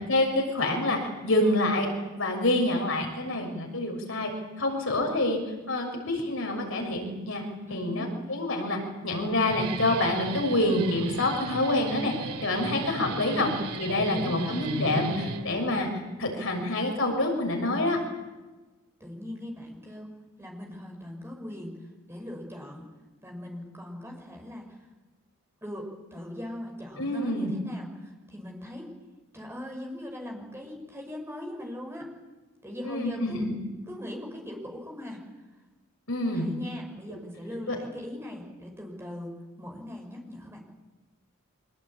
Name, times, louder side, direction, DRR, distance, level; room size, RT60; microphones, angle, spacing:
voice 1, 0.1-1.9 2.2-4.3 4.6-5.4 5.7-7.4 7.7-12.1 12.4-13.5 13.8-15.9 16.2-18.0 27.0-27.5 32.8-33.5 36.1-36.5 37.7-37.8, left 1 dB, 65° left, 2 dB, 6.4 m, -27 dB
voice 2, 7.7-8.1 12.6-14.6 19.0-20.1 20.4-21.8 22.1-22.9 23.2-24.8 25.6-28.9 29.3-32.1 32.6-33.4 33.9-35.2 36.3-40.6, left 1 dB, 10° right, 1 dB, 5.6 m, -40 dB
Guitar, 9.3-15.9, right 2 dB, 90° right, 2.7 m, -36 dB
25.0 x 21.5 x 8.8 m, 1.2 s
head